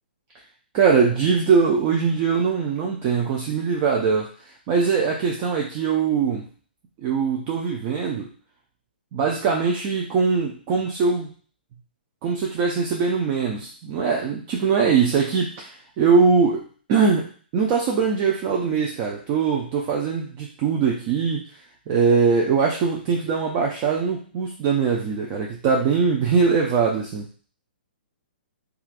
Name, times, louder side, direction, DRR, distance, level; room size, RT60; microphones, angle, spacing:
voice 1, 0.7-4.3 4.7-6.5 7.0-8.3 9.1-11.3 12.2-16.6 16.9-21.5 21.9-27.3, right 5 dB, 35° right, -1 dB, 0.5 m, -21 dB
3.2 x 2.4 x 2.4 m, 0.42 s
hypercardioid pair, 140°, 6 cm